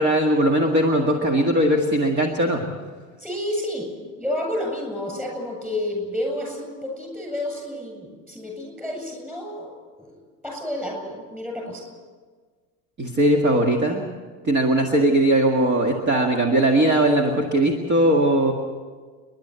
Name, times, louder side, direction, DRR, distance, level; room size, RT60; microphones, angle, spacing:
voice 1, 0.0-2.8 13.0-14.0 14.4-18.5, right 1 dB, 30° right, 2 dB, 1.9 m, -19 dB
voice 2, 3.2-3.9 4.2-11.8, left 1 dB, 5° right, 0 dB, 7.9 m, -30 dB
30.0 x 11.5 x 8.1 m, 1.5 s
cardioid pair, 155°, 38 cm